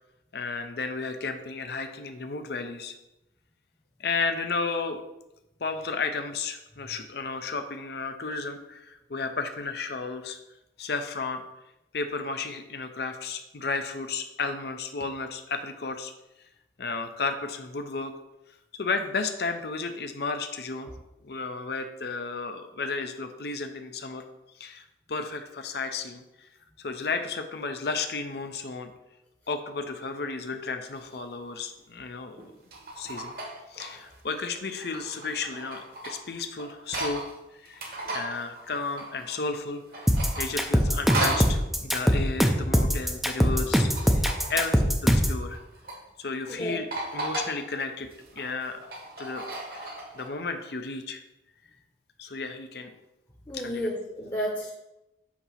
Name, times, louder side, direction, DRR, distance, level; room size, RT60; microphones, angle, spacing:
voice 1, 0.3-2.9 4.0-5.0 5.6-10.4 10.8-11.4 11.9-16.1 16.8-18.1 18.7-20.9 21.2-24.2 24.6-26.5 26.8-28.9 29.5-32.5 33.0-33.3 33.7-37.2 37.6-40.0 40.4-45.6 46.2-46.9 47.1-48.1 48.4-48.8 49.2-51.2 52.2-52.9 53.5-53.9, left 4 dB, 65° left, 7 dB, 0.6 m, -33 dB
sound 1, 31.0-31.1 32.4-34.2 34.6-37.3 37.6-39.6 39.9-41.6 43.6-44.6 45.5-46.0 46.4-46.5 46.9-47.6 48.0-50.3, right 2 dB, 55° right, 1.2 m, -36 dB
sound 2, 40.1-45.4, equal, ahead, 0.5 m, -22 dB
voice 2, 53.5-54.7, equal, 20° left, -3 dB, 0.9 m, -31 dB
8.3 x 2.8 x 5.7 m, 0.93 s
head